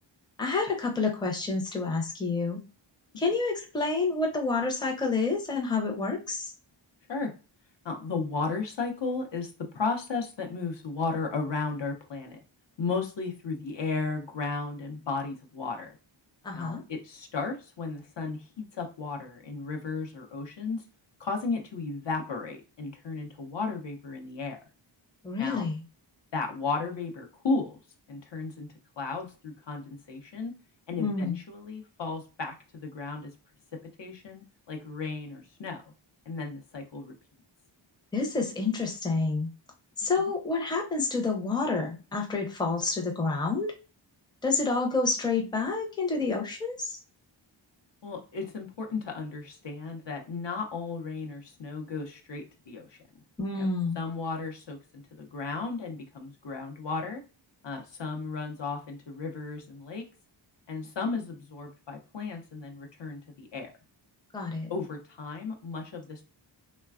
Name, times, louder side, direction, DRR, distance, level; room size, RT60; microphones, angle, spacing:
voice 1, 0.4-2.6 3.2-6.5 16.4-16.8 25.2-25.8 31.0-31.4 38.1-39.5 40.0-43.7 44.4-47.0 53.4-54.0 64.3-64.7, left 3 dB, 10° left, 1 dB, 0.5 m, -28 dB
voice 2, 7.8-12.4 12.8-16.0 16.5-20.9 21.2-24.6 25.4-25.7 26.3-27.8 28.1-30.5 30.9-33.3 34.0-35.9 36.3-37.1 40.2-40.3 48.0-53.0 53.6-53.7 54.0-57.2 57.6-60.1 60.7-63.7 64.7-66.2, left 4 dB, 65° left, 2 dB, 0.6 m, -34 dB
3.2 x 2.1 x 2.3 m, 0.33 s
wide cardioid pair, 100°, 48 cm